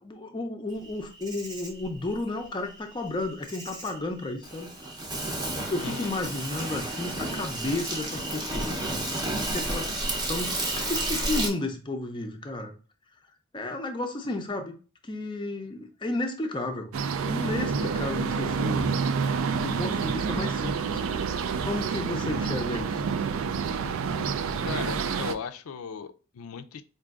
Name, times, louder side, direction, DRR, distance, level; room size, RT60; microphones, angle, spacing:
voice 1, 0.0-4.7 5.7-9.1 9.4-9.9 10.3-12.7 13.5-14.7 15.0-16.9 17.2-19.1 19.6-23.0, left 2 dB, 20° left, 5 dB, 0.4 m, -33 dB
Insect, 0.8-11.5, right 1 dB, 20° right, 0.7 m, -32 dB
sound 1, 16.9-25.3, right 5 dB, 75° right, 0.3 m, -28 dB
voice 2, 24.6-26.8, left 6 dB, 85° left, 10 dB, 0.4 m, -37 dB
4.8 x 2.6 x 2.4 m, 0.36 s
head